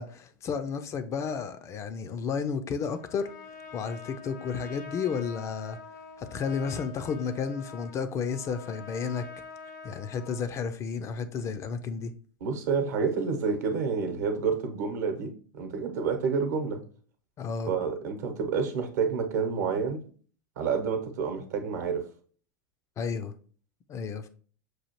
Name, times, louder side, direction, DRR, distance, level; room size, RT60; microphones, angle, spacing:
voice 1, 0.0-3.3 3.7-5.8 6.2-9.3 9.8-12.1 17.4-17.7 23.0-23.3 23.9-24.3, left 6 dB, 30° left, 0.4 m, -32 dB
Trumpet, 2.9-10.6, left 5 dB, 70° left, 0.7 m, -45 dB
voice 2, 12.4-16.8 17.7-20.0 20.6-22.0, right 5 dB, 65° right, 0.9 m, -29 dB
6.2 x 2.4 x 2.9 m
figure-of-eight pair, 90°, 10 cm